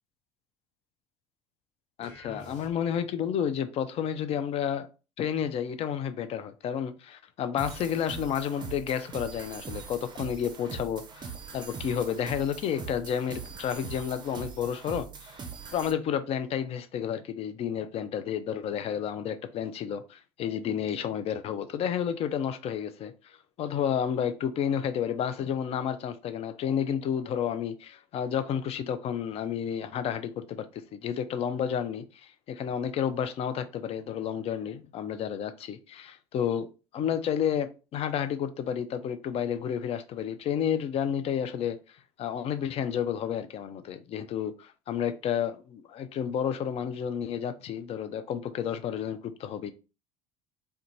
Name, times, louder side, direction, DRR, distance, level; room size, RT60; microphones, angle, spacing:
sound 1, 2.0-3.2, left 2 dB, 80° left, 1.2 m, -48 dB
voice 1, 2.0-4.9 5.2-15.4 15.7-36.7 36.9-41.8 42.2-49.7, left 8 dB, 40° left, 0.4 m, -31 dB
sound 2, 7.6-15.9, right 6 dB, 30° right, 0.5 m, -41 dB
2.4 x 2.2 x 2.9 m
hypercardioid pair, 65°, 15 cm